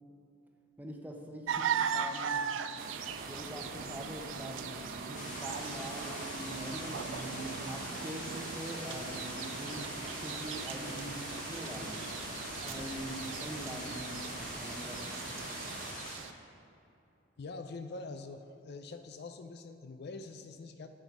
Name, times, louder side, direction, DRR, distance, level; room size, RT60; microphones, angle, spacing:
voice 1, 0.8-2.6 3.3-4.8 5.1-9.9 10.2-12.0 12.6-14.0 14.6-15.3, right 1 dB, 10° right, 2 dB, 0.8 m, -43 dB
sound 1, 1.5-16.3, right 7 dB, 90° right, 0.4 m, -40 dB
sound 2, 2.8-15.9, right 3 dB, 50° right, 0.8 m, -44 dB
sound 3, 5.1-16.2, left 2 dB, 45° left, 1.8 m, -44 dB
voice 2, 17.4-20.9, left 3 dB, 60° left, 8 dB, 0.4 m, -44 dB
9.0 x 7.8 x 4.7 m, 2.7 s
head